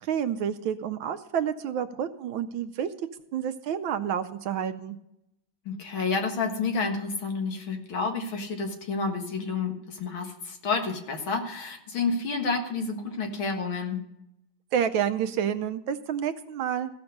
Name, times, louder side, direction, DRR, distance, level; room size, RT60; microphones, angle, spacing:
voice 1, 0.0-2.9 3.3-5.0 14.7-16.9, right 9 dB, 75° right, 9 dB, 1.4 m, -29 dB
voice 2, 5.7-14.0, left 4 dB, 70° left, 3 dB, 2.3 m, -30 dB
15.5 x 6.1 x 6.5 m, 0.82 s
omnidirectional pair, 2.4 m